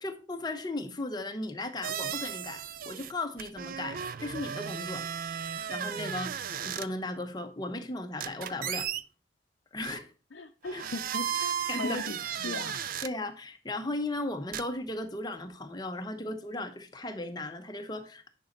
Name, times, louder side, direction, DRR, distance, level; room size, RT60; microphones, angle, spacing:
voice 1, 0.0-5.1 5.7-8.9 9.7-10.1 10.7-10.8 11.7-12.0 13.0-18.3, left 2 dB, 20° left, 0.9 m, -36 dB
sound 1, 1.8-3.1 3.4-6.9 8.2-9.0 9.8-10.0 10.6-13.1 14.5-14.6, right 8 dB, 45° right, 0.4 m, -35 dB
voice 2, 10.3-12.9, left 3 dB, 60° left, 0.6 m, -39 dB
10.0 x 5.3 x 4.0 m
head